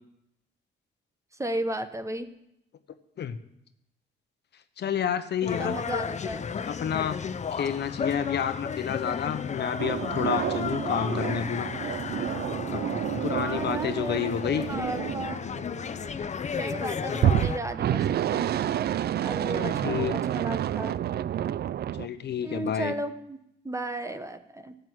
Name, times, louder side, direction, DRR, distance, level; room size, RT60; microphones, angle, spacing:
voice 1, 1.4-2.3 5.4-6.5 13.3-15.4 16.6-18.5 19.2-21.0 22.4-23.4 23.6-24.8, right 1 dB, 15° right, 10 dB, 1.1 m, -34 dB
voice 2, 4.8-5.8 6.6-7.2 7.5-11.7 12.7-12.8 13.2-14.7 19.5-20.1 22.0-22.9, left 8 dB, 60° left, 10 dB, 1.0 m, -29 dB
sound 1, 5.5-17.6, left 6 dB, 35° left, 0.8 m, -33 dB
sound 2, 9.8-16.1 17.2-22.1, right 11 dB, 55° right, 0.4 m, -29 dB
12.5 x 8.0 x 9.6 m, 0.80 s
cardioid pair, 90°, 20 cm